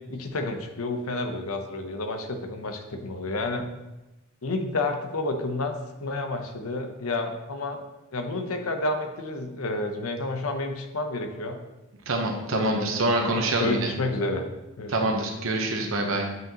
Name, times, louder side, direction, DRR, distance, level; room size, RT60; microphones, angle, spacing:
voice 1, 0.1-3.7 4.4-7.8 8.1-11.6 12.5-14.4 14.8-15.2, left 2 dB, 75° left, 6 dB, 0.8 m, -30 dB
voice 2, 12.1-13.9 14.9-16.3, right 2 dB, 65° right, 2 dB, 0.9 m, -25 dB
7.8 x 5.4 x 2.9 m, 1.0 s
head